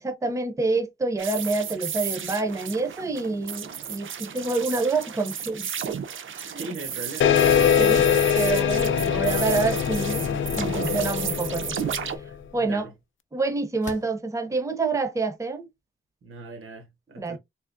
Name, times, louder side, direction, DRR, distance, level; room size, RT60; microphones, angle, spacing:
voice 1, 0.0-6.0 6.4-6.7 7.8-8.0 8.4-12.0 12.5-12.9 13.3-15.7 17.2-17.4, right 3 dB, 15° right, 0.5 m, -27 dB
sound 1, 1.2-12.2, right 8 dB, 70° right, 0.5 m, -34 dB
voice 2, 6.5-8.0 12.2-12.9 16.2-17.4, right 3 dB, 85° right, 1.0 m, -40 dB
sound 2, 7.2-12.3, left 8 dB, 65° left, 0.4 m, -23 dB
sound 3, 7.9-8.3 10.5-11.1 11.8-11.9 13.8-14.2, left 3 dB, 35° left, 0.8 m, -39 dB
3.6 x 2.8 x 2.5 m
wide cardioid pair, 165°, 21 cm